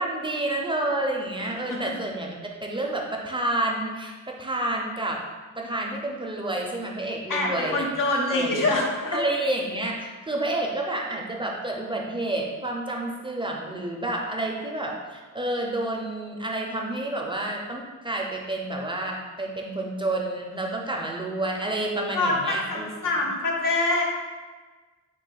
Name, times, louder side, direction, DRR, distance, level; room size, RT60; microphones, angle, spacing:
voice 1, 0.0-2.4 2.6-5.2 5.6-7.9 8.3-8.6 9.1-22.9 23.2-23.3, right 1 dB, 15° right, -1 dB, 0.4 m, -29 dB
voice 2, 7.3-9.2 22.1-24.0, left 2 dB, 90° left, -2 dB, 0.9 m, -25 dB
4.2 x 2.9 x 3.7 m, 1.3 s
wide cardioid pair, 160°, 31 cm